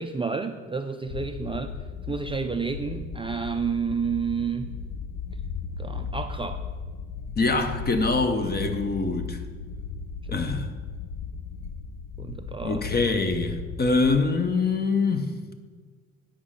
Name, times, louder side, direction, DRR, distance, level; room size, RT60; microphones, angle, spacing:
voice 1, 0.0-1.7 2.1-4.7 5.8-6.6 10.3-10.5 12.2-12.8, right 5 dB, 20° right, 0.4 m, -30 dB
sound 1, 1.1-14.2, left 5 dB, 70° left, 0.6 m, -36 dB
voice 2, 7.4-9.4 10.3-10.7 12.6-15.3, left 3 dB, 30° left, 0.9 m, -24 dB
8.5 x 5.1 x 5.6 m
cardioid pair, 90°, 30 cm